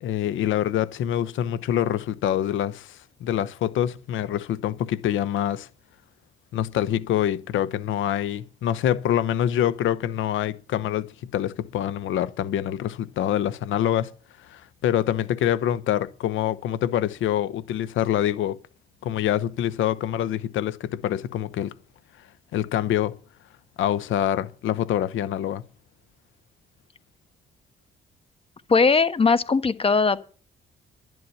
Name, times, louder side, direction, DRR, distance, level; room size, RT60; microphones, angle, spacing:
voice 1, 0.0-5.7 6.5-14.1 14.5-18.6 19.0-21.7 22.5-23.1 23.8-25.6, left 11 dB, 80° left, 1.0 m, -25 dB
voice 2, 28.7-30.2, left 4 dB, 30° left, 1.3 m, -19 dB
11.5 x 11.0 x 7.0 m
cardioid pair, 90°, 20 cm